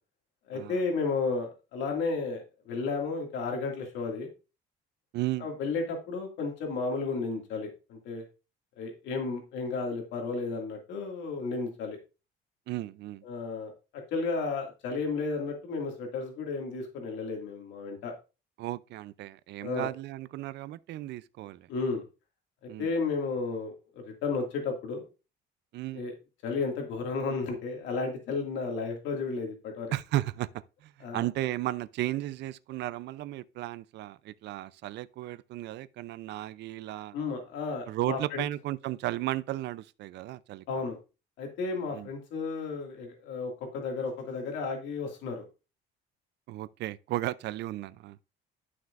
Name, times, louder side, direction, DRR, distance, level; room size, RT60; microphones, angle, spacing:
voice 1, 0.5-4.3 5.4-8.2 8.8-12.0 13.2-13.7 14.1-18.1 19.6-19.9 21.7-22.0 22.8-23.7 24.0-25.1 25.9-26.1 26.4-29.9 31.0-31.2 37.1-38.4 40.7-41.0 41.4-45.4, left 4 dB, 85° left, 2.2 m, -33 dB
voice 2, 5.1-5.5 12.7-13.2 18.6-21.7 22.7-22.9 25.7-26.0 29.9-37.2 37.9-40.8 41.9-42.1 46.5-48.2, right 15 dB, 70° right, 0.5 m, -35 dB
11.5 x 6.1 x 2.5 m
cardioid pair, 155°, 19 cm